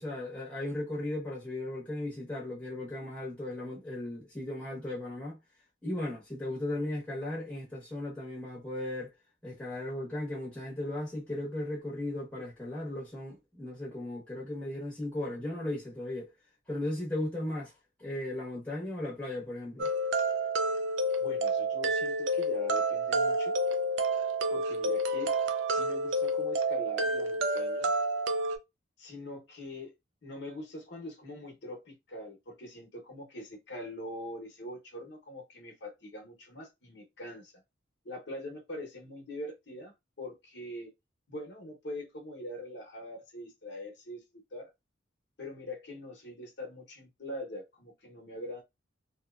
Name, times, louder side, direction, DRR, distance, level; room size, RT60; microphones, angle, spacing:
voice 1, 0.0-5.4 5.8-9.1 9.4-16.3 16.7-17.7 18.0-19.9, left 1 dB, 5° left, 0.9 m, -36 dB
sound 1, 19.8-28.6, right 1 dB, 65° right, 0.4 m, -29 dB
voice 2, 21.2-23.5 24.5-25.4 25.7-27.9 29.0-29.9 30.2-37.5 38.0-40.9 41.3-44.2 44.5-44.7 45.4-48.6, left 1 dB, 60° left, 0.8 m, -43 dB
2.7 x 2.2 x 2.3 m
head